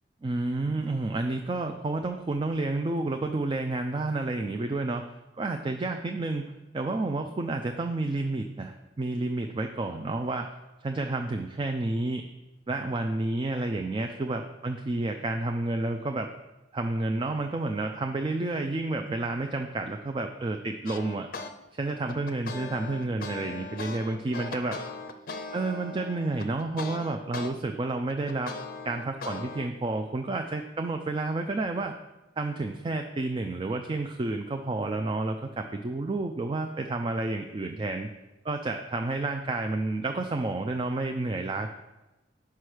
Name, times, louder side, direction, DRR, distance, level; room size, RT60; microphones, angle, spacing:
voice 1, 0.2-5.0 5.4-6.4 6.7-10.5 10.8-12.2 12.7-16.3 16.7-21.3 21.8-24.8 25.5-28.5 28.8-31.9 32.4-38.1 38.4-41.7, right 2 dB, 30° right, 5 dB, 0.4 m, -30 dB
sound 1, 20.9-21.5 21.9-27.5 27.9-29.7, left 3 dB, 50° left, 0.5 m, -39 dB
5.5 x 4.8 x 6.1 m, 1.0 s
head